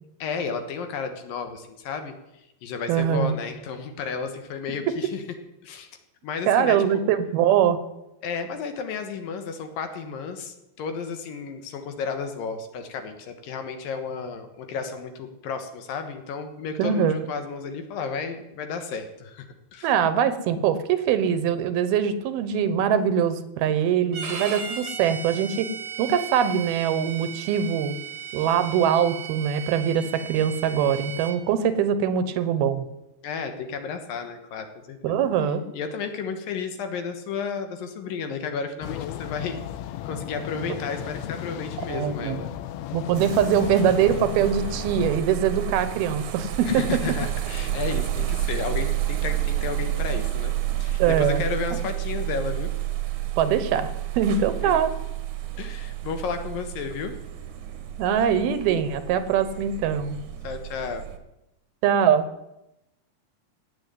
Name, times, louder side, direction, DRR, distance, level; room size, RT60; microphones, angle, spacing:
voice 1, 0.2-2.1 2.6-5.2 5.6-5.9 6.2-7.0 8.2-19.9 33.2-35.2 35.7-39.6 40.0-42.5 46.6-50.5 50.8-52.7 54.6-54.8 55.6-57.1 60.4-61.1, left 5 dB, 70° left, 7 dB, 2.9 m, -32 dB
voice 2, 2.9-3.3 6.5-7.8 16.8-17.2 19.8-25.7 26.0-28.0 28.3-32.8 35.0-35.6 41.8-42.4 42.9-46.8 51.0-51.4 53.4-53.9 54.2-54.9 58.0-60.2 61.8-62.3, right 8 dB, 75° right, 12 dB, 2.8 m, -22 dB
Bowed string instrument, 24.1-31.4, right 7 dB, 45° right, 2.0 m, -36 dB
sound 1, 38.8-45.2, left 11 dB, 85° left, 2.7 m, -35 dB
sound 2, 43.1-61.2, right 13 dB, 60° right, 2.3 m, -30 dB
17.5 x 7.9 x 9.1 m, 0.90 s
omnidirectional pair, 4.5 m